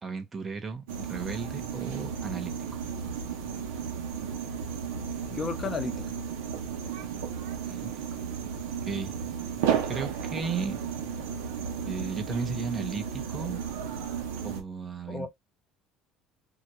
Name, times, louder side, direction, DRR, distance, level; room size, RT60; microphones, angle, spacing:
voice 1, 0.0-2.5 7.6-8.3 8.6-9.1 9.9-10.8 11.8-13.6 14.4-15.3, right 5 dB, 30° right, 0.8 m, -35 dB
sound 1, 0.9-14.6, right 7 dB, 90° right, 0.6 m, -34 dB
voice 2, 5.3-6.1 15.1-15.3, left 5 dB, 30° left, 0.6 m, -33 dB
2.2 x 2.2 x 2.9 m
supercardioid pair, 90°, 0 cm